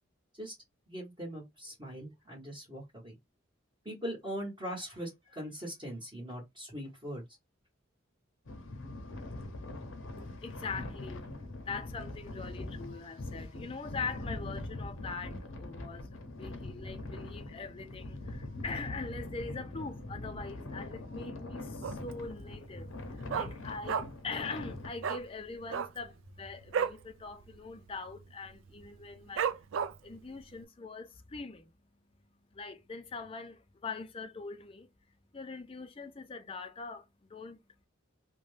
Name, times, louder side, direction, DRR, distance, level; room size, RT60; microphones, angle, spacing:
voice 1, 0.9-3.2 3.8-7.2, equal, 25° right, 1.2 m, -41 dB
sound 1, 8.5-24.9, left 2 dB, 75° left, 0.7 m, -42 dB
voice 2, 10.2-29.6 30.0-37.6, left 4 dB, 25° left, 0.4 m, -43 dB
Dog, 21.8-22.2 22.5-22.6 22.9-24.3 24.6-24.7 25.0-25.2 25.6-27.0 27.4-27.6 27.8-28.2 28.7-28.8 29.4-30.2 30.6-30.7, right 7 dB, 70° right, 0.3 m, -33 dB
2.6 x 2.2 x 3.2 m
head